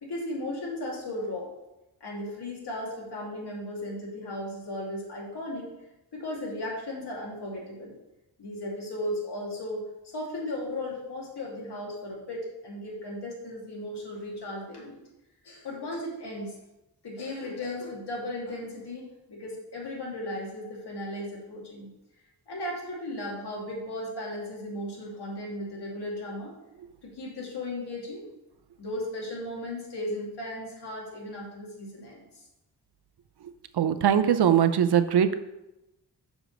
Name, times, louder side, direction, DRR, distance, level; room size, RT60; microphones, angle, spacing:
voice 1, 0.0-1.5 2.0-5.7 6.1-7.9 8.4-15.0 15.4-16.5 17.0-21.9 22.5-26.5 27.0-28.2 28.8-32.4, left 1 dB, 80° left, -3 dB, 2.4 m, -36 dB
voice 2, 33.8-35.3, right 9 dB, 75° right, 10 dB, 0.7 m, -21 dB
6.3 x 5.0 x 6.4 m, 0.94 s
wide cardioid pair, 105°, 40 cm